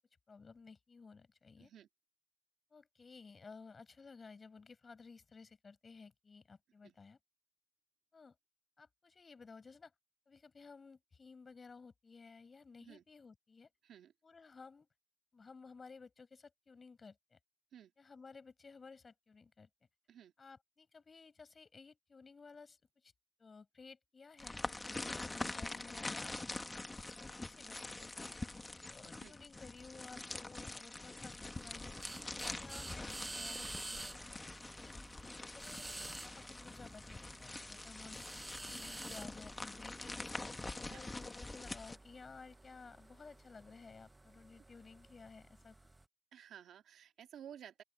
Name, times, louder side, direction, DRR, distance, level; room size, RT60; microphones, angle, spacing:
voice 1, 0.3-1.7 2.7-7.2 8.1-8.4 8.8-9.9 10.3-13.7 14.2-14.9 15.3-17.4 18.0-19.7 20.4-23.1 23.4-28.3 28.8-31.9 32.6-34.5 34.8-35.0 35.5-35.9 36.2-40.4 40.9-45.8, left 4 dB, 40° left, 5.0 m, -56 dB
sound 1, 24.4-42.0, left 2 dB, 20° left, 1.5 m, -45 dB
sound 2, 31.6-46.0, right 2 dB, 20° right, 0.5 m, -51 dB
voice 2, 40.8-41.1 46.3-47.8, right 9 dB, 80° right, 2.0 m, -54 dB
open air
cardioid pair, 70°, 0 cm